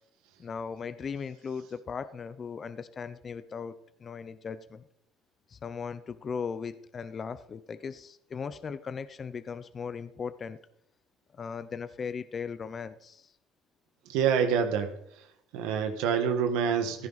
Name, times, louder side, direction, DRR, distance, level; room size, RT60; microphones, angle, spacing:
voice 1, 0.4-3.7 4.0-4.8 5.5-10.6 11.3-13.3, left 6 dB, 30° left, 12 dB, 0.6 m, -38 dB
voice 2, 14.1-14.9 15.5-17.1, right 7 dB, 90° right, 6 dB, 1.5 m, -26 dB
15.5 x 14.0 x 4.1 m, 0.78 s
cardioid pair, 140°, 0 cm